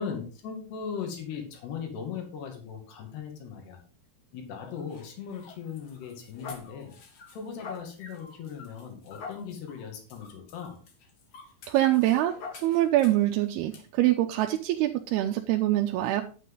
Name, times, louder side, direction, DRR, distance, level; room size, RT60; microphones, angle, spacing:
voice 1, 0.0-3.8 4.3-6.9 7.3-10.8, left 6 dB, 80° left, 3 dB, 4.3 m, -38 dB
dog-barking scratching whining, 4.6-13.3 13.7-13.8 14.4-14.6, left 5 dB, 50° left, 2.2 m, -46 dB
voice 2, 11.7-16.2, right 14 dB, 80° right, 4 dB, 2.6 m, -24 dB
10.0 x 8.5 x 3.8 m, 0.37 s
omnidirectional pair, 4.7 m